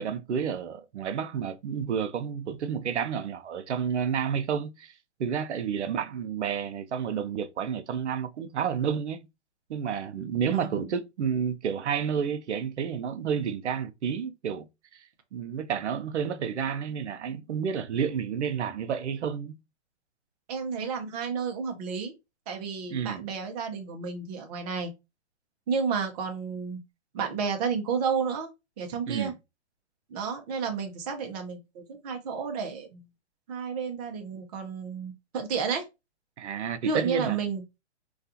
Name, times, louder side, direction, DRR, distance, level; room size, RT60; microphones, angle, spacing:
voice 1, 0.0-4.9 5.2-9.3 9.7-14.7 14.9-15.0 15.3-19.5 22.9-23.2 29.1-29.3 36.4-37.4, right 7 dB, 80° right, 0.6 m, -30 dB
voice 2, 10.4-10.9 20.5-22.1 22.5-24.9 25.7-26.8 27.1-28.5 28.8-29.3 30.1-33.0 33.5-35.9 36.8-37.6, right 6 dB, 35° right, 0.6 m, -31 dB
2.4 x 2.3 x 2.7 m
hypercardioid pair, 130°, 34 cm